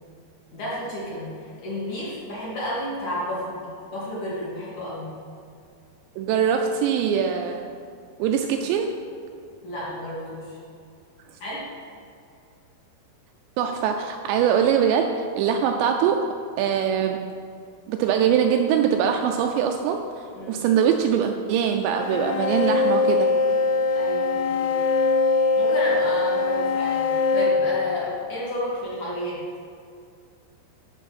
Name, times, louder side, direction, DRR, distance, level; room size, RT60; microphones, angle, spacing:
voice 1, 0.5-5.1 9.6-10.6 11.4-11.7 20.3-20.6 23.9-24.7 25.6-29.4, left 1 dB, 50° left, -7 dB, 2.8 m, -31 dB
voice 2, 6.2-7.7 8.2-8.9 13.6-16.2 16.6-17.2 17.9-23.3, right 8 dB, 85° right, 4 dB, 2.6 m, -22 dB
sound 1, 22.0-28.5, left 4 dB, 80° left, 2.2 m, -22 dB
13.0 x 5.8 x 4.2 m, 2.4 s
omnidirectional pair, 5.3 m